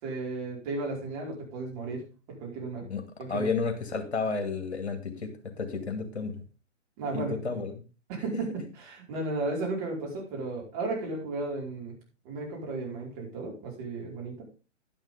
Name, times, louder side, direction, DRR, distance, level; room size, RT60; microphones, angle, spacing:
voice 1, 0.0-2.0 2.3-2.9 3.2-3.5 7.0-7.4 8.1-8.5 8.8-11.9 12.2-14.4, right 3 dB, 30° right, -2 dB, 4.9 m, -34 dB
voice 2, 3.3-6.4 7.1-7.8, left 4 dB, 60° left, 6 dB, 2.4 m, -32 dB
11.0 x 10.5 x 3.6 m, 0.31 s
figure-of-eight pair, 125°, 37 cm